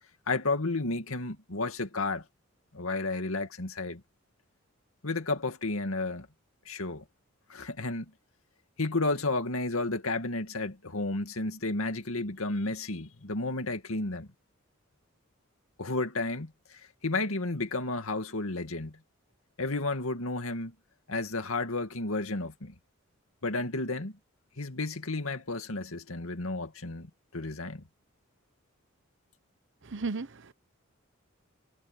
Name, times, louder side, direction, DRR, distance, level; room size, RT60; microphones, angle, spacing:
voice 1, 0.3-2.2 2.7-4.0 5.0-6.3 6.7-7.0 7.5-8.1 8.8-14.3 15.8-19.0 19.6-20.7 21.1-22.7 23.4-24.1 24.6-27.8, left 2 dB, 85° left, 2.2 m, -32 dB
voice 2, 29.8-30.5, right 4 dB, 60° right, 1.0 m, -35 dB
head